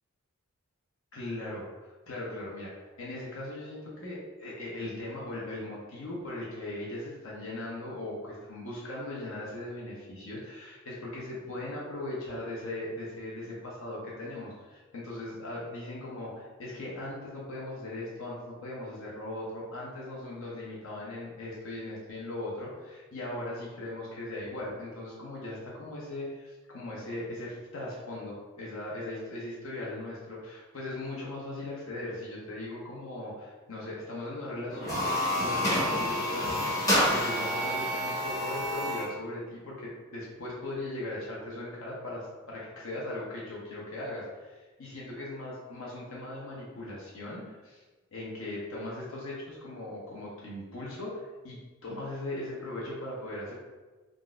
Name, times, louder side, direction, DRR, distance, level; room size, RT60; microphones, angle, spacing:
voice 1, 1.1-35.1 35.4-47.8 48.1-53.5, left 1 dB, 70° left, -5 dB, 0.8 m, -39 dB
sound 1, 34.7-39.1, equal, 15° left, 0.6 m, -28 dB
3.8 x 2.4 x 2.4 m, 1.3 s
head